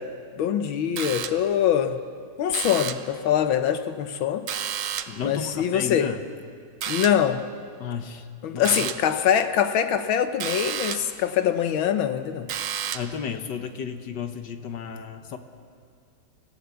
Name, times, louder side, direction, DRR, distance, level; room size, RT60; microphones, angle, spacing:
voice 1, 0.4-2.0 2.4-4.5 5.2-6.1 6.9-7.4 8.4-12.5, left 9 dB, 85° left, 9 dB, 1.8 m, -23 dB
sound 1, 1.0-1.6 2.5-3.2 4.5-5.3 6.8-7.3 8.6-9.2 10.4-11.2 12.5-13.2, right 9 dB, 65° right, 0.7 m, -32 dB
voice 2, 5.1-6.2 7.8-8.3 8.5-8.9 12.9-15.4, left 7 dB, 65° left, 7 dB, 1.7 m, -33 dB
25.5 x 15.0 x 7.0 m, 2.2 s
omnidirectional pair, 2.1 m